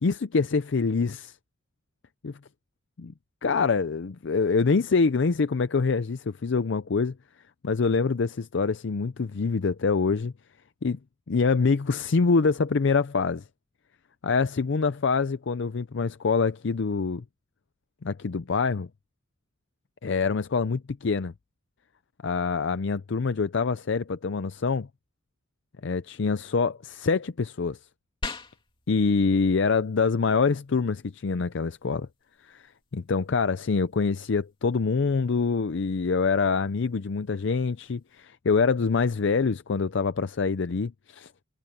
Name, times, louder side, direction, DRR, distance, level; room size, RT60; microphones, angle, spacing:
voice 1, 0.0-1.4 2.2-2.4 3.0-3.1 3.4-7.1 7.6-10.3 10.8-11.0 11.3-13.4 14.2-17.2 18.0-18.9 20.0-21.3 22.2-24.9 25.8-27.8 28.9-32.1 32.4-41.4, left 4 dB, 60° left, 0.5 m, -25 dB
sound 1, 28.2-38.2, left 3 dB, 25° left, 2.6 m, -47 dB
head